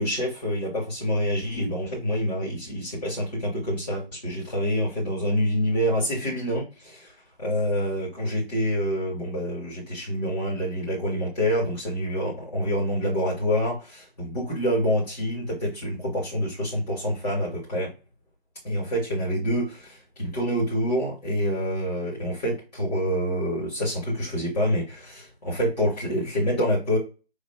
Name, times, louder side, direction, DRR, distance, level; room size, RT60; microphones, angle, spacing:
voice 1, 0.0-7.1 7.4-17.9 18.6-27.0, equal, 40° left, -5 dB, 2.2 m, -27 dB
5.3 x 3.3 x 2.3 m, 0.31 s
figure-of-eight pair, 155°, 31 cm